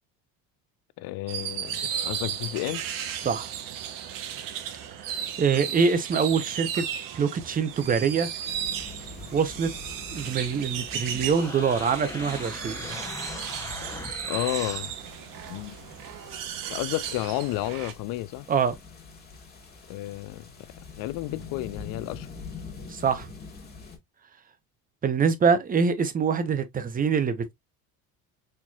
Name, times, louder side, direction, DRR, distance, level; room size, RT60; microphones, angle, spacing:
voice 1, 1.0-2.8 14.2-14.9 15.5-15.8 16.7-18.5 19.9-20.5 21.0-22.3, left 17 dB, 70° left, 0.5 m, -31 dB
sound 1, 1.3-17.9, right 9 dB, 65° right, 0.9 m, -35 dB
voice 2, 5.1-6.8 7.1-8.3 9.3-9.7 10.1-12.8 18.5-18.7 22.9-23.3 25.0-27.5, right 6 dB, 25° right, 0.7 m, -24 dB
sound 2, 8.4-24.0, left 4 dB, 25° left, 1.5 m, -45 dB
sound 3, 11.0-14.9, left 2 dB, 10° left, 0.8 m, -39 dB
4.4 x 3.0 x 2.3 m
cardioid pair, 120°, 36 cm